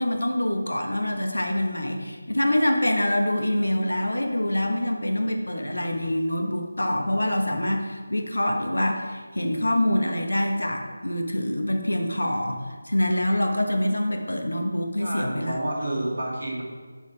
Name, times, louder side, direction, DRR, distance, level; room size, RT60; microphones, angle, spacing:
voice 1, 0.0-15.6, left 1 dB, 80° left, 4 dB, 1.3 m, -25 dB
voice 2, 15.0-16.6, right 1 dB, 60° right, -3 dB, 2.4 m, -29 dB
7.2 x 6.5 x 4.9 m, 1.5 s
figure-of-eight pair, 160°, 0 cm